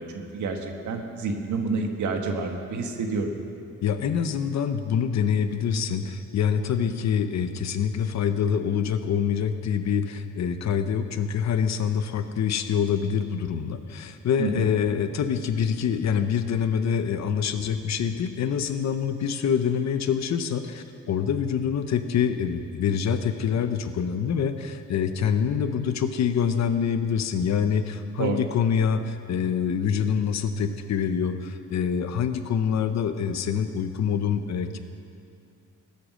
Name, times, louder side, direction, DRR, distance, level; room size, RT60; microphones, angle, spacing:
voice 1, 0.0-3.3 14.4-14.7 28.2-28.4, right 3 dB, 75° right, 3 dB, 1.7 m, -29 dB
voice 2, 3.8-34.8, left 7 dB, 60° left, 9 dB, 0.9 m, -25 dB
22.0 x 8.4 x 6.4 m, 2.5 s
wide cardioid pair, 160°, 30 cm